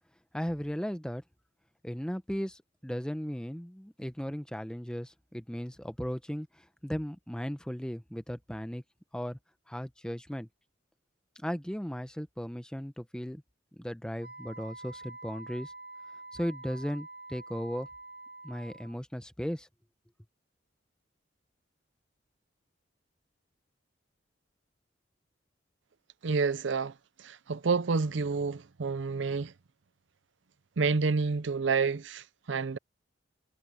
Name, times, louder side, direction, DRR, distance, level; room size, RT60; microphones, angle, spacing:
voice 1, 0.3-1.2 1.8-6.5 6.8-8.8 9.1-9.4 9.7-10.5 11.4-13.4 13.8-15.7 16.3-17.9 18.4-19.7, equal, 5° left, 0.9 m, -36 dB
Wind instrument woodwind instrument, 14.2-19.0, right 2 dB, 55° right, 1.2 m, -47 dB
voice 2, 26.2-26.9 27.2-29.5 30.8-32.8, right 4 dB, 75° right, 0.6 m, -29 dB
head